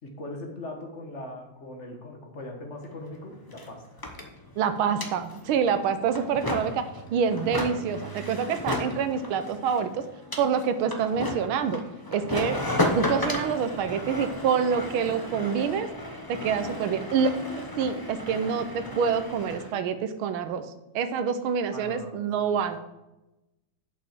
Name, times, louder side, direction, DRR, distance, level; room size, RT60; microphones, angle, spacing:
voice 1, 0.0-4.0 16.4-16.5 16.8-17.0 21.7-22.8, left 1 dB, 35° left, 2 dB, 1.7 m, -40 dB
sound 1, 2.8-2.9 3.1-19.7, left 1 dB, 20° left, 0.6 m, -34 dB
voice 2, 4.6-10.0 10.4-11.8 12.1-12.6 12.9-15.9 16.3-17.3 17.6-20.6 20.9-22.8, right 6 dB, 85° right, 10 dB, 1.7 m, -26 dB
7.3 x 5.7 x 7.4 m, 0.95 s
omnidirectional pair, 2.2 m